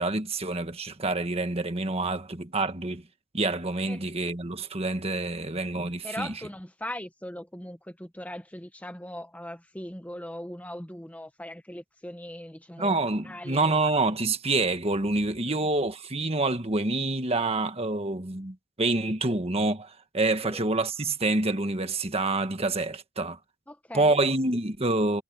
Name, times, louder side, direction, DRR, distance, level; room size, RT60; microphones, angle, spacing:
voice 1, 0.0-3.0 3.3-6.3 12.8-23.4 23.9-25.2, right 2 dB, 30° right, 1.5 m, -27 dB
voice 2, 6.0-13.0 13.2-13.7 15.4-15.7 20.4-20.6 23.7-24.2, left 1 dB, 5° left, 1.1 m, -40 dB
head